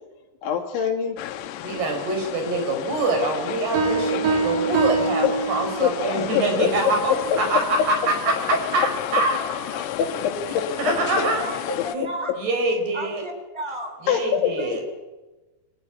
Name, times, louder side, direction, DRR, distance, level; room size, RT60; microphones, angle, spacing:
voice 1, 0.4-1.2 5.2-5.3 5.8-5.9 6.3-6.7 7.3-7.4 10.0-10.9 14.1-14.5, left 8 dB, 65° left, 2 dB, 4.5 m, -23 dB
sound 1, 1.2-12.0, left 12 dB, 85° left, 3.9 m, -33 dB
voice 2, 1.6-8.3 8.7-9.4 10.8-11.4 11.9-12.0 12.4-13.2 14.0-14.8, right 2 dB, 50° right, 4 dB, 6.6 m, -25 dB
sound 2, 3.8-6.1, right 4 dB, 85° right, 6.2 m, -24 dB
voice 3, 6.0-6.9 7.6-7.9 11.2-11.6 11.8-12.3 12.9-13.9 14.6-14.7, right 1 dB, 5° right, 5 dB, 3.4 m, -33 dB
26.0 x 15.5 x 9.9 m, 1.1 s
omnidirectional pair, 6.0 m